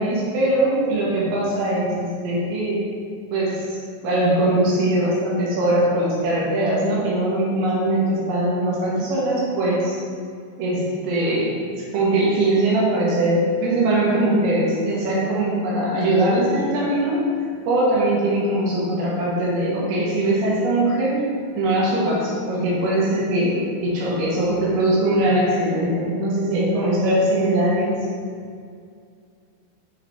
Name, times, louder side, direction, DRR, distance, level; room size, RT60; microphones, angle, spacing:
voice 1, 0.0-2.8 3.3-10.0 10.6-11.6 11.9-17.3 17.7-21.3 21.6-28.1, right 1 dB, 80° right, -6 dB, 4.0 m, -21 dB
10.5 x 4.1 x 4.2 m, 2.2 s
omnidirectional pair, 5.2 m